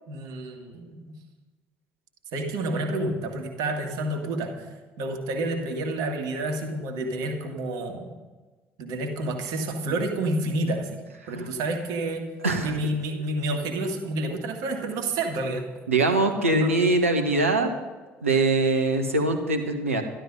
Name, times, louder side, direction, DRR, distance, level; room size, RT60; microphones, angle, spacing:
voice 1, 0.1-1.0 2.3-4.5 5.0-8.1 8.8-10.9 11.3-12.2 12.6-15.6 16.0-16.7, right 2 dB, 65° right, 3 dB, 2.0 m, -29 dB
voice 2, 12.4-12.8 15.9-17.7 18.2-20.0, right 2 dB, 85° right, 6 dB, 1.3 m, -23 dB
12.5 x 12.5 x 5.4 m, 1.3 s
figure-of-eight pair, 50°, 7 cm